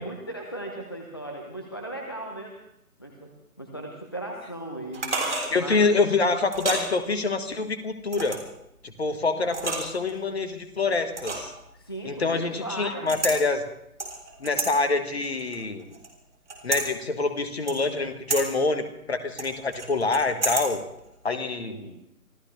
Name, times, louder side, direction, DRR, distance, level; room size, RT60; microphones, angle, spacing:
voice 1, 0.0-2.6 3.0-3.3 3.6-5.1 5.5-5.9 11.8-13.1 21.7-21.9, right 1 dB, 15° left, 1 dB, 0.7 m, -37 dB
sound 1, 4.9-5.5 6.5-6.9 8.1-8.5 9.5-10.1 11.2-11.6 13.1-13.4 14.0-14.7 15.2-16.1 16.5-16.8 17.7-18.0 18.3-18.4 19.4-20.7 21.0-21.1, right 3 dB, 50° right, 3.7 m, -30 dB
voice 2, 5.5-8.4 8.8-11.5 12.0-13.6 14.4-15.8 16.6-20.8 21.2-21.8, left 3 dB, 45° left, 8 dB, 1.7 m, -26 dB
26.0 x 16.0 x 3.3 m, 0.79 s
figure-of-eight pair, 155°, 46 cm